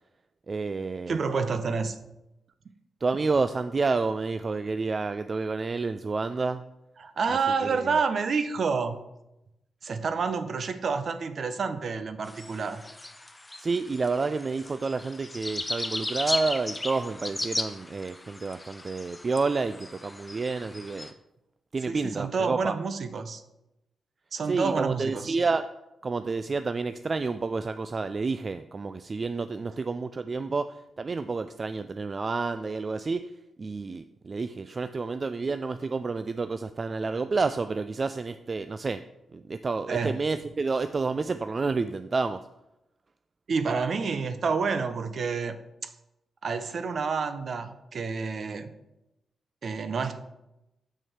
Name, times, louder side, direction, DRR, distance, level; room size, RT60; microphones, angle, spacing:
voice 1, 0.5-1.2 3.0-6.6 7.3-7.8 13.6-21.1 21.7-22.7 24.5-25.7 26.0-33.3 33.6-39.0 39.3-42.4, right 4 dB, 45° right, 11 dB, 0.3 m, -29 dB
voice 2, 1.1-2.0 7.0-9.0 9.8-12.8 21.9-23.4 24.3-25.4 39.9-40.2 43.5-45.6 45.8-45.9 46.4-48.7 49.6-50.2, right 5 dB, 60° right, 10 dB, 0.7 m, -29 dB
sound 1, 12.3-21.1, left 2 dB, 20° left, 0.8 m, -36 dB
6.7 x 6.1 x 4.6 m, 0.91 s
cardioid pair, 60°, 0 cm